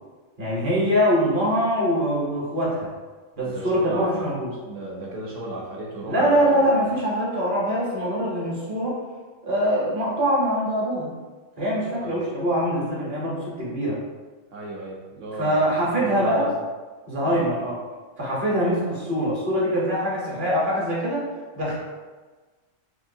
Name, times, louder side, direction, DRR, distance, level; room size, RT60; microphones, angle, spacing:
voice 1, 0.4-2.9 3.4-4.5 6.1-9.0 9.4-11.1 11.6-14.0 15.4-16.4 17.1-17.8 18.2-21.3 21.5-21.7, equal, 40° right, -6 dB, 1.1 m, -23 dB
voice 2, 3.4-6.8 12.0-12.2 14.5-16.6 17.2-17.4, right 1 dB, 65° right, -3 dB, 1.1 m, -35 dB
4.2 x 2.5 x 2.7 m, 1.3 s
omnidirectional pair, 1.4 m